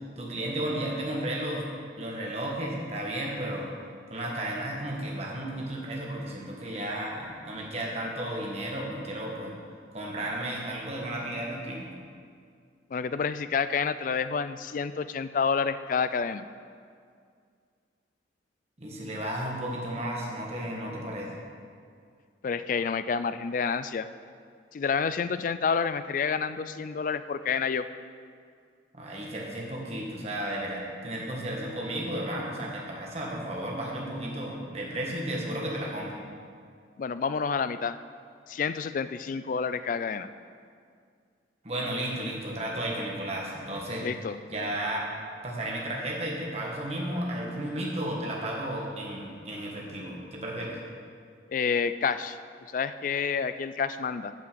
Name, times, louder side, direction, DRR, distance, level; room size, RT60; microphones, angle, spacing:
voice 1, 0.2-1.6 2.0-3.7 4.1-9.5 9.9-11.9 18.8-21.4 28.9-36.2 41.6-44.1 44.5-45.1 45.4-50.8, right 1 dB, 35° right, -2 dB, 1.6 m, -33 dB
voice 2, 12.9-16.5 22.4-24.1 24.7-27.9 37.0-38.0 38.5-40.3 44.0-44.4 51.5-52.4 52.7-54.3, left 6 dB, 45° left, 12 dB, 0.3 m, -29 dB
9.1 x 5.6 x 6.9 m, 2.2 s
head